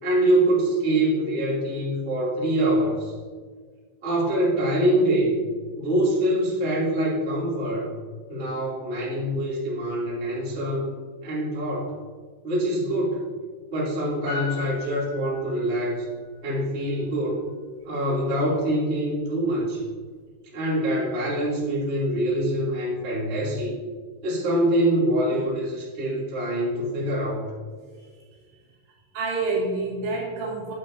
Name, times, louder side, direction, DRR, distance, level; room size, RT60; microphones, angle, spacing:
voice 1, 0.0-3.1 4.0-5.4 5.8-7.9 8.3-10.9 11.2-11.9 12.4-13.2 13.7-16.0 16.4-17.4 17.8-19.8 20.5-23.7 24.2-27.5, right 1 dB, 20° right, -7 dB, 1.8 m, -24 dB
Piano, 14.3-16.1 16.4-16.5, left 6 dB, 70° left, 4.9 m, -37 dB
voice 2, 29.1-30.7, right 3 dB, 70° right, -3 dB, 3.0 m, -28 dB
10.0 x 8.7 x 2.7 m, 1.5 s
omnidirectional pair, 5.5 m